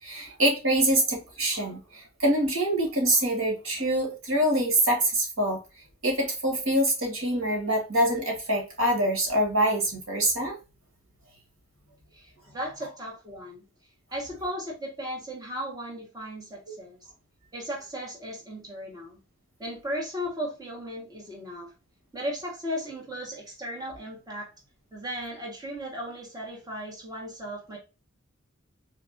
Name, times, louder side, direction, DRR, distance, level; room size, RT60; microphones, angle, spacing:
voice 1, 0.0-5.6 6.0-10.6, right 1 dB, 90° right, 1 dB, 2.0 m, -25 dB
voice 2, 12.1-13.6 14.1-17.0 17.5-19.2 19.6-21.7 22.1-24.5 24.9-27.8, equal, 20° right, -2 dB, 1.6 m, -36 dB
4.2 x 2.9 x 2.7 m, 0.29 s
head